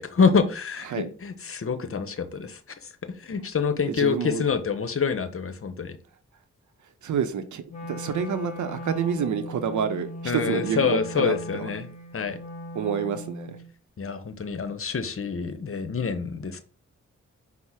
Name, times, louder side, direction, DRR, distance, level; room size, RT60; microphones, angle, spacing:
voice 1, 0.0-2.9 3.2-6.0 10.2-11.9 12.1-12.4 14.0-16.6, left 5 dB, 50° left, 0.8 m, -26 dB
voice 2, 3.9-4.5 7.0-11.7 12.7-13.6, right 7 dB, 80° right, 0.6 m, -28 dB
Wind instrument woodwind instrument, 7.7-13.7, equal, 25° left, 1.1 m, -38 dB
5.4 x 2.1 x 4.7 m
cardioid pair, 45°, 29 cm